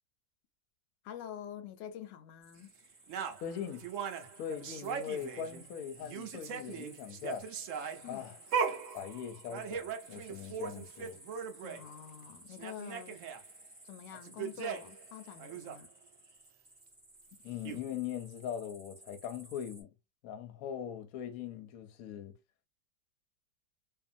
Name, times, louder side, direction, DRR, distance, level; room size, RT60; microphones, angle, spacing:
voice 1, 1.0-2.7 8.0-8.3 11.6-13.2 13.8-15.9, left 10 dB, 90° left, 1.2 m, -47 dB
sound 1, 2.4-19.8, right 1 dB, 10° right, 0.8 m, -57 dB
sound 2, 3.1-5.7 6.0-11.8 12.2-12.3 12.5-13.4 14.1-15.0 15.4-15.8 17.3-17.4 17.6-17.8, right 6 dB, 70° right, 0.7 m, -39 dB
voice 2, 3.4-3.8 4.4-7.5 8.1-8.4 8.9-11.2 17.4-19.9 20.2-22.3, left 9 dB, 65° left, 1.0 m, -41 dB
2.6 x 2.5 x 2.5 m
omnidirectional pair, 1.9 m